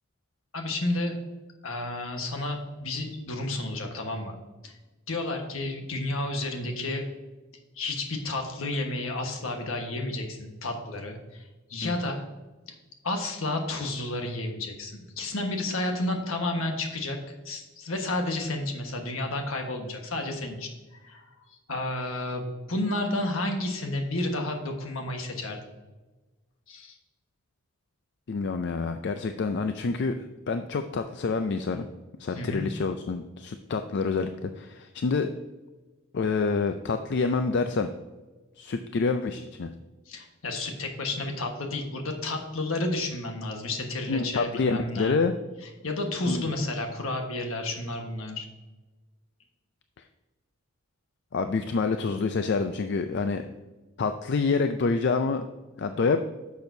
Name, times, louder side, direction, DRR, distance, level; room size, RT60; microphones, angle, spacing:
voice 1, 0.5-1.2 1.6-4.4 4.6-4.7 5.1-7.1 7.8-11.4 11.7-12.2 13.0-17.2 17.4-20.7 21.0-21.3 21.7-25.6 26.7-26.9 32.3-32.6 40.1-45.2 45.8-48.5, left 2 dB, 70° left, 3 dB, 1.4 m, -31 dB
voice 2, 28.3-31.9 32.2-35.3 36.1-37.9 38.6-39.7 44.1-45.3 46.3-46.4 51.3-53.4 54.0-55.5 55.8-56.2, left 4 dB, 50° left, 8 dB, 0.4 m, -27 dB
10.5 x 7.0 x 2.7 m, 1.2 s
head